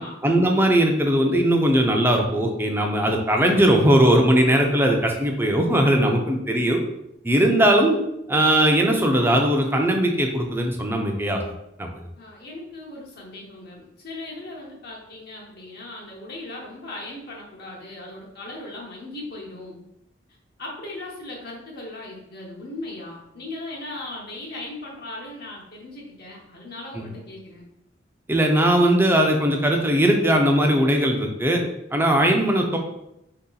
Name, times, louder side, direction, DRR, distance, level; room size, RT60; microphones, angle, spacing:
voice 1, 0.2-6.8 7.2-8.0 8.3-11.4 11.8-11.9 26.9-27.1 28.3-31.6 31.9-32.8, right 1 dB, 10° right, 2 dB, 0.5 m, -19 dB
voice 2, 12.2-19.8 20.6-27.7, left 2 dB, 60° left, -3 dB, 0.8 m, -38 dB
3.9 x 2.8 x 3.8 m, 0.84 s
head